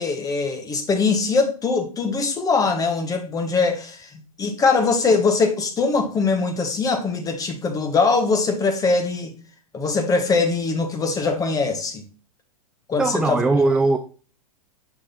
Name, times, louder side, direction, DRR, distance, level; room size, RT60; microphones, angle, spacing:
voice 1, 0.0-9.3 9.7-12.0 12.9-13.4, left 4 dB, 20° left, 1.4 m, -22 dB
voice 2, 13.0-14.0, right 3 dB, 5° right, 0.4 m, -19 dB
6.5 x 6.0 x 2.6 m
hypercardioid pair, 105°, 19 cm